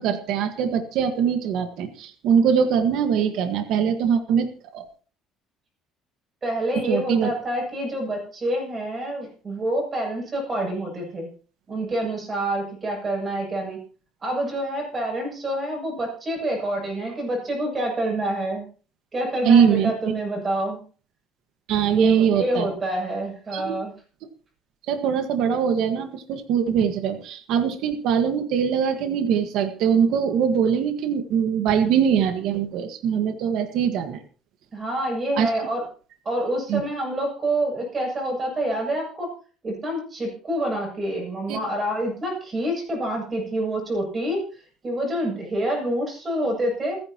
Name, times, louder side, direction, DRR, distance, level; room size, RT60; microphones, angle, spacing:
voice 1, 0.0-4.5 4.7-4.8 6.9-7.3 19.5-19.9 21.7-22.7 23.5-23.8 24.9-34.2 35.4-35.5 36.7-36.8 41.5-41.6, right 7 dB, 65° right, 6 dB, 1.6 m, -22 dB
voice 2, 6.4-11.3 11.7-13.8 14.2-18.7 19.1-20.8 21.9-23.9 34.7-35.9 36.2-39.3 39.6-47.0, right 1 dB, 20° right, 0 dB, 7.8 m, -27 dB
28.5 x 10.5 x 3.0 m, 0.39 s
cardioid pair, 165°, 0 cm